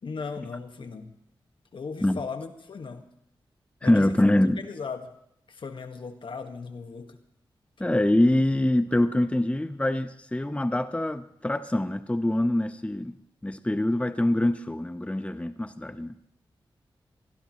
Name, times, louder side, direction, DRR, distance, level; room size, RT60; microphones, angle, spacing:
voice 1, 0.0-1.1 1.7-3.1 3.8-5.1 5.5-7.2, left 5 dB, 65° left, 7 dB, 1.8 m, -37 dB
voice 2, 3.8-4.6 7.8-13.1 13.4-16.1, left 1 dB, 15° left, 10 dB, 1.0 m, -24 dB
22.5 x 16.0 x 3.2 m, 0.76 s
cardioid pair, 50°, 9 cm